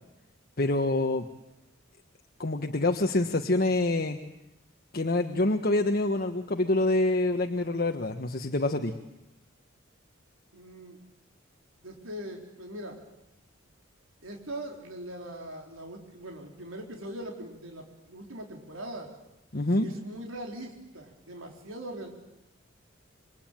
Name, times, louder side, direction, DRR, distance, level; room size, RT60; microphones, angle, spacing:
voice 1, 0.6-1.3 2.4-4.2 4.9-8.9 19.5-19.9, left 2 dB, 50° left, 5 dB, 1.3 m, -26 dB
voice 2, 10.5-11.0 11.8-13.0 14.2-19.1 19.8-22.1, right 1 dB, 85° right, 2 dB, 4.0 m, -41 dB
27.5 x 24.0 x 9.1 m, 0.90 s
head